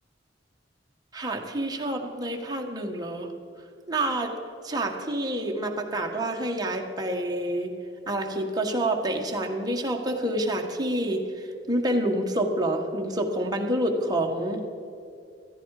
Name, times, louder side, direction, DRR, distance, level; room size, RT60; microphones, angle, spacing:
voice 1, 1.1-3.3 3.9-4.3 4.6-7.7 8.1-14.6, right 1 dB, 20° right, 1 dB, 1.7 m, -28 dB
15.0 x 15.0 x 5.0 m, 2.5 s
head